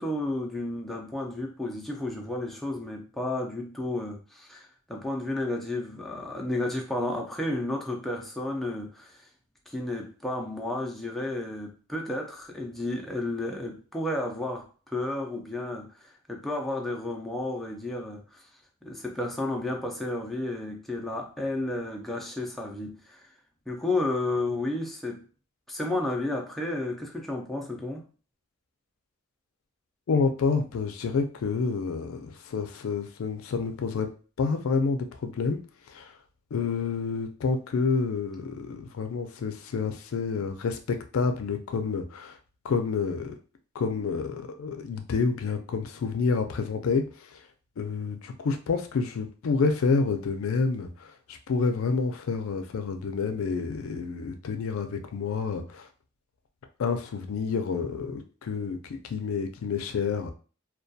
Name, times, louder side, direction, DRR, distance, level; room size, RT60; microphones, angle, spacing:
voice 1, 0.0-9.2 9.7-18.4 18.8-23.3 23.7-25.2 25.7-28.0, left 2 dB, ahead, 0.4 m, -32 dB
voice 2, 30.1-34.1 34.4-35.6 35.9-36.1 36.5-42.4 42.6-43.4 43.7-47.4 47.8-55.9 56.8-60.3, left 4 dB, 85° left, 0.4 m, -28 dB
2.3 x 2.2 x 2.6 m
head